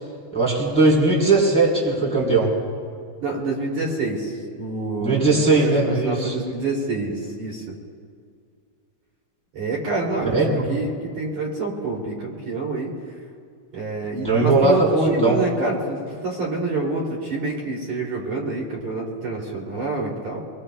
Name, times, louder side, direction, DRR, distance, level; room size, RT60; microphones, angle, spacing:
voice 1, 0.3-2.5 5.0-6.3 10.3-10.7 14.2-15.4, right 3 dB, ahead, -4 dB, 2.1 m, -19 dB
voice 2, 3.2-7.7 9.5-12.9 13.7-20.4, right 3 dB, 40° right, -2 dB, 3.1 m, -27 dB
28.0 x 22.0 x 2.3 m, 2.2 s
omnidirectional pair, 6.0 m